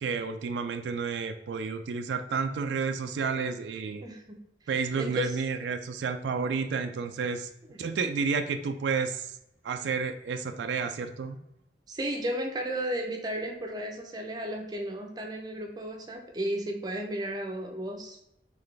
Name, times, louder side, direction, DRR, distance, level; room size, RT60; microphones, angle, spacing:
voice 1, 0.0-4.1 4.7-7.5 7.8-9.3 9.6-11.4, right 5 dB, 80° right, 8 dB, 0.3 m, -31 dB
voice 2, 4.0-4.4 5.0-5.4 11.9-18.3, right 1 dB, 25° right, 3 dB, 0.6 m, -34 dB
3.9 x 3.2 x 3.3 m, 0.80 s
head